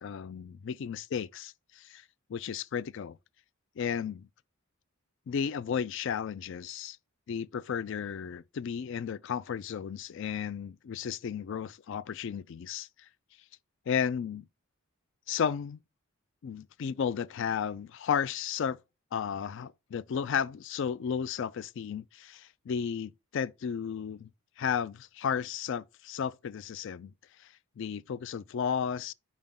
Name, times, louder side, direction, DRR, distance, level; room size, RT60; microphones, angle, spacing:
voice 1, 0.0-2.0 2.3-3.2 3.8-4.3 5.3-7.0 7.3-13.1 13.9-14.5 15.3-15.8 16.4-18.8 19.1-24.3 24.6-27.1 27.4-29.1, left 7 dB, 55° left, 0.3 m, -33 dB
5.4 x 4.9 x 3.6 m
head